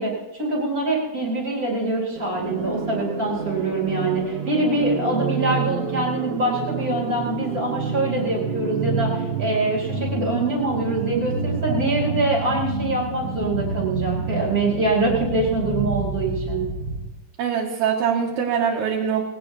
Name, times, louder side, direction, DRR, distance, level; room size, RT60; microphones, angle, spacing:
voice 1, 0.0-16.6, right 2 dB, 25° right, -3 dB, 4.2 m, -24 dB
sound 1, 2.2-17.1, right 4 dB, 40° right, 1.8 m, -28 dB
voice 2, 17.4-19.2, right 7 dB, 70° right, -3 dB, 2.9 m, -23 dB
20.5 x 17.0 x 2.8 m, 1.0 s
omnidirectional pair, 3.6 m